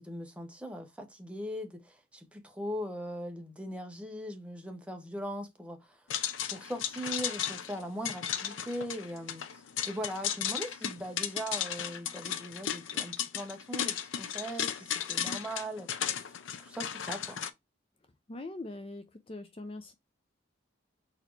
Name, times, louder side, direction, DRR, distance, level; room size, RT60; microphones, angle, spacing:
voice 1, 0.0-6.0 6.5-15.9 16.6-17.4, equal, 5° right, 0.8 m, -40 dB
sound 1, 6.1-17.5, left 9 dB, 85° left, 0.5 m, -35 dB
voice 2, 18.3-19.9, left 2 dB, 30° left, 0.5 m, -42 dB
4.1 x 2.7 x 4.5 m
head